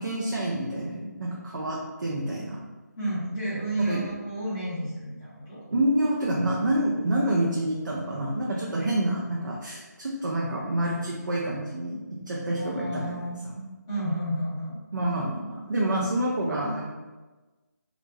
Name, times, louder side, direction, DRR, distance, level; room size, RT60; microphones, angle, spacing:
voice 1, 0.0-2.6 3.9-4.0 5.7-13.1 13.6-13.7 14.9-16.9, right 1 dB, 80° right, -4 dB, 0.5 m, -27 dB
voice 2, 3.0-5.6 12.6-13.4 13.9-14.8, right 1 dB, 10° left, -14 dB, 0.6 m, -31 dB
2.4 x 2.1 x 3.3 m, 1.2 s
figure-of-eight pair, 170°, 10 cm